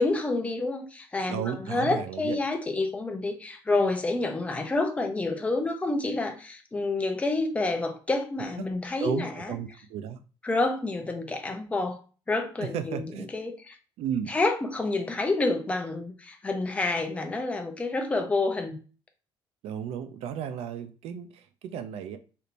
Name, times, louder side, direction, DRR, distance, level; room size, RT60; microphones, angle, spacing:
voice 1, 0.0-9.6 10.4-12.0 12.3-13.1 13.3-13.8 14.3-18.8, left 2 dB, 15° left, 0.5 m, -28 dB
voice 2, 1.3-2.4 9.0-10.2 12.6-13.3 14.0-14.4 19.6-22.2, right 8 dB, 85° right, 0.4 m, -34 dB
3.4 x 2.8 x 2.5 m
cardioid pair, 145°, 10 cm